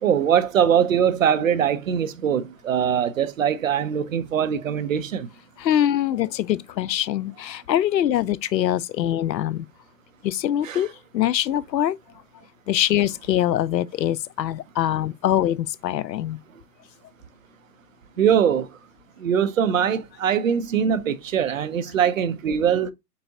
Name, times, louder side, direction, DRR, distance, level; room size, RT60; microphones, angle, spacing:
voice 1, 0.0-5.3 10.6-10.9 18.2-18.7 19.2-22.9, right 8 dB, 55° right, 0.6 m, -22 dB
voice 2, 5.6-9.7 10.2-12.0 12.7-16.4, left 11 dB, 85° left, 0.6 m, -23 dB
4.6 x 4.1 x 2.6 m
hypercardioid pair, 160°, 49 cm